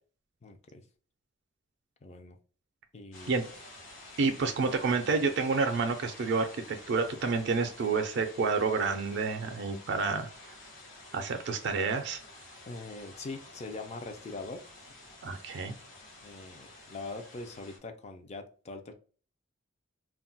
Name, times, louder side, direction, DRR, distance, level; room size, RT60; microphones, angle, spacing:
voice 1, 0.4-0.8 2.0-2.4 2.9-3.3 12.7-14.6 16.2-18.9, left 3 dB, 35° left, 6 dB, 0.4 m, -42 dB
sound 1, 3.1-17.8, left 2 dB, 80° left, 0.9 m, -50 dB
voice 2, 4.2-10.3 11.1-12.2 15.2-15.8, right 4 dB, 60° right, 7 dB, 0.4 m, -29 dB
2.3 x 2.1 x 3.8 m, 0.40 s
head